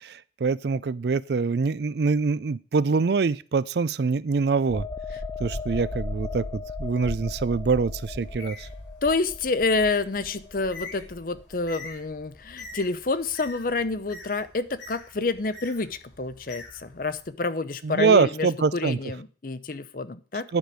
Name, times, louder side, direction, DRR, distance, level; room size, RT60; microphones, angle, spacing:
voice 1, 0.0-4.8 5.4-8.7 17.8-19.0 20.5-20.6, right 4 dB, 60° right, 0.4 m, -24 dB
sound 1, 4.7-12.1 12.5-12.7, left 2 dB, 15° left, 0.5 m, -36 dB
Bird, 8.2-17.3, left 3 dB, 85° left, 3.6 m, -46 dB
voice 2, 9.0-20.4, left 3 dB, 50° left, 0.7 m, -28 dB
10.5 x 5.2 x 6.2 m
head